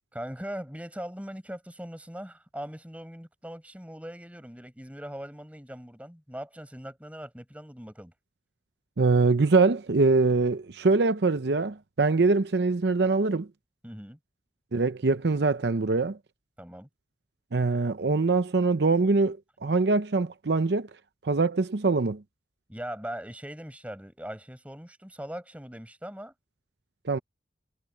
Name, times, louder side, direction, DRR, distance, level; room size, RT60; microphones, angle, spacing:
voice 1, 0.1-8.1 13.8-14.2 16.6-16.9 22.7-26.3, equal, 10° right, 7.6 m, -40 dB
voice 2, 9.0-13.5 14.7-16.2 17.5-20.9 21.2-22.2 27.0-27.2, right 3 dB, 75° right, 0.7 m, -23 dB
head